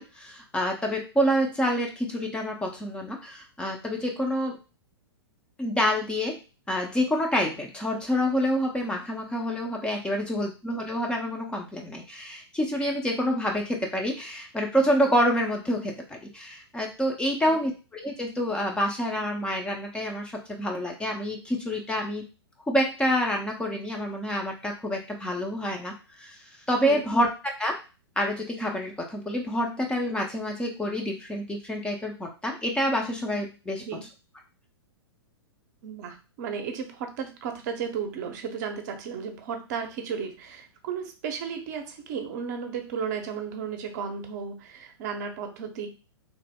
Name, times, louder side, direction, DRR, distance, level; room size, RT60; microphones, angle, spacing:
voice 1, 0.0-4.6 5.6-6.4 6.7-22.2 22.7-26.4 26.7-27.8 28.2-33.8, equal, 5° left, 1 dB, 0.5 m, -27 dB
voice 2, 35.8-45.9, right 6 dB, 40° right, 5 dB, 0.7 m, -34 dB
3.0 x 2.0 x 3.5 m, 0.31 s
figure-of-eight pair, 110°, 14 cm